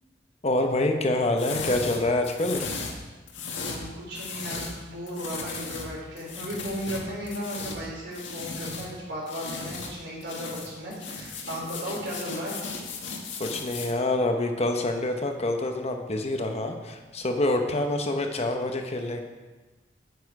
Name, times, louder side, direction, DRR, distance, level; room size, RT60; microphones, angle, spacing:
voice 1, 0.4-2.7 13.4-19.2, left 2 dB, 35° left, 4 dB, 0.9 m, -26 dB
sound 1, 1.4-4.8 5.1-8.9 9.2-9.9 10.2-13.9, left 4 dB, 85° left, 1.6 m, -36 dB
voice 2, 3.5-12.6, equal, 65° right, -4 dB, 3.9 m, -35 dB
9.4 x 8.7 x 4.8 m, 1.2 s
head